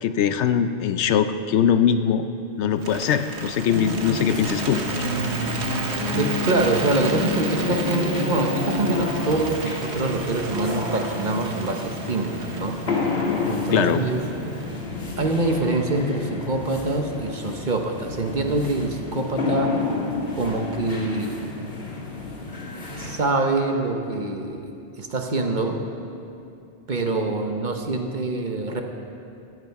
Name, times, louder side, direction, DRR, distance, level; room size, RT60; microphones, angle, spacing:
voice 1, 0.0-2.3 2.6-5.1 13.7-14.0, left 8 dB, 75° left, 10 dB, 0.9 m, -21 dB
Bird, 2.7-14.9, right 4 dB, 70° right, 1.4 m, -34 dB
sound 1, 3.7-23.2, left 3 dB, 55° left, 1.9 m, -29 dB
voice 2, 6.1-12.8 13.5-14.2 15.2-19.7 20.4-21.4 23.0-24.7 25.0-25.8 26.9-28.8, right 2 dB, 45° right, 3 dB, 1.0 m, -25 dB
15.5 x 11.0 x 4.7 m, 2.6 s
omnidirectional pair, 1.2 m